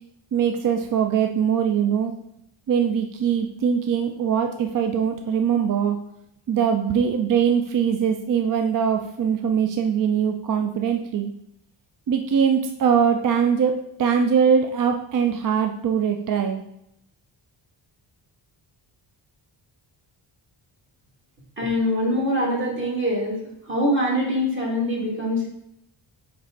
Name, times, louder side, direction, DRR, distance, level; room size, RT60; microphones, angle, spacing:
voice 1, 0.3-2.1 2.7-6.0 6.5-11.3 12.1-16.6, right 7 dB, 45° right, 5 dB, 0.4 m, -22 dB
voice 2, 21.6-23.4 23.7-25.5, equal, 25° right, -3 dB, 2.0 m, -23 dB
8.6 x 3.3 x 3.8 m, 0.78 s
wide cardioid pair, 145°, 47 cm